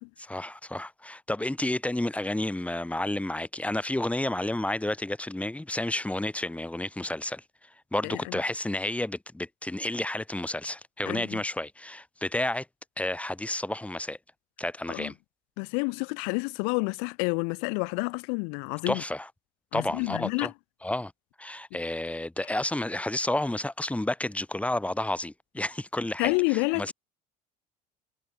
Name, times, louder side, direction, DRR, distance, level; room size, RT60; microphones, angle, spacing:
voice 1, 0.2-7.4 7.9-12.7 13.0-14.2 14.6-15.1 18.9-19.3 19.7-20.5 20.8-21.1 21.4-26.9, left 1 dB, 5° left, 1.1 m, -31 dB
voice 2, 8.0-8.4 11.1-11.4 14.9-15.1 15.6-19.0 19.7-20.5 26.2-26.9, left 40 dB or more, 75° left, 0.9 m, -29 dB
hypercardioid pair, 75°, 20 cm